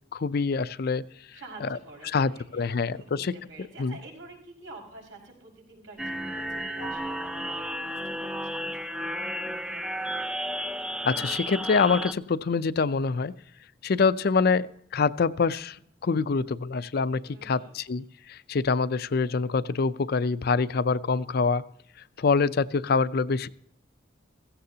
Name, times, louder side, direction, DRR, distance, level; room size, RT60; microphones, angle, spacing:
voice 1, 0.1-1.1 2.1-3.3 3.8-3.9 11.0-13.3 13.8-15.8 16.0-21.6 22.2-23.5, left 4 dB, 55° left, 15 dB, 0.5 m, -25 dB
voice 2, 1.3-10.1 17.2-17.7, right 2 dB, 85° right, -1 dB, 5.2 m, -48 dB
sound 1, 6.0-12.1, equal, 5° right, 0.4 m, -33 dB
16.0 x 15.0 x 2.8 m, 0.66 s
head